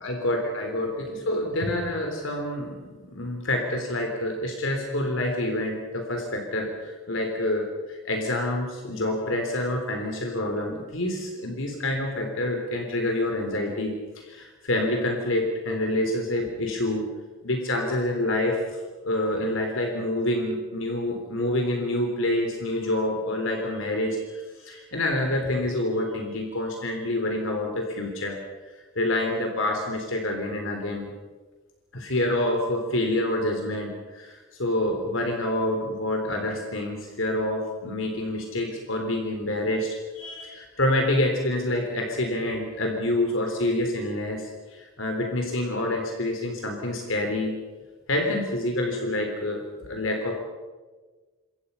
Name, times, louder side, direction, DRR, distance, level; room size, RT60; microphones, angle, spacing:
voice 1, 0.0-17.0 17.4-18.8 19.0-28.4 28.7-31.1 31.9-47.6 48.1-50.4, left 1 dB, 75° left, 2 dB, 3.8 m, -27 dB
28.0 x 25.0 x 5.7 m, 1.3 s
head